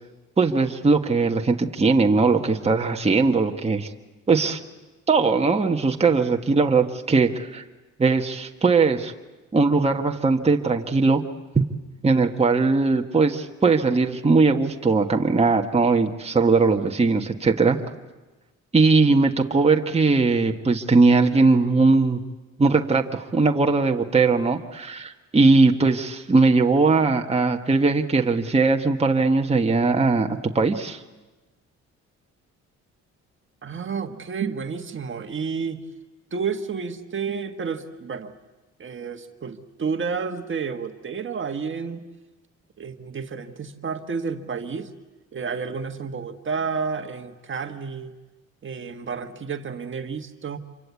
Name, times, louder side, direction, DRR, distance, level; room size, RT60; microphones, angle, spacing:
voice 1, 0.4-3.9 4.3-4.6 5.1-7.6 8.0-9.1 9.5-11.2 11.5-11.6 12.0-17.8 18.7-22.2 22.6-30.3 30.5-31.0, right 3 dB, 20° right, 3 dB, 1.5 m, -20 dB
voice 2, 33.6-35.8 36.3-38.3 38.8-42.0 42.8-44.9 45.3-48.1 48.6-50.6, right 5 dB, 40° right, 6 dB, 1.5 m, -30 dB
27.0 x 24.0 x 8.4 m, 1.2 s
cardioid pair, 90°, 30 cm